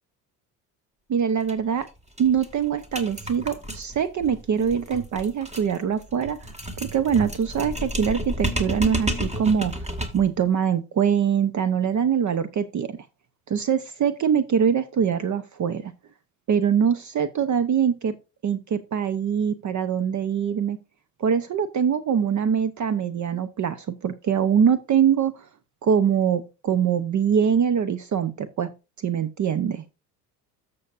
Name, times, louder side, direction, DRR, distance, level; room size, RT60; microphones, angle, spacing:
voice 1, 1.1-1.9 2.2-6.4 6.8-9.9 10.1-13.0 13.5-15.9 16.5-18.1 18.4-20.8 21.2-25.5 25.8-28.7 29.0-29.8, right 7 dB, 40° right, 14 dB, 0.9 m, -23 dB
sound 1, 1.4-1.5 1.8-1.9 2.2-10.3, equal, 15° right, 2.3 m, -32 dB
13.0 x 7.1 x 2.6 m, 0.28 s
hypercardioid pair, 70°, 45 cm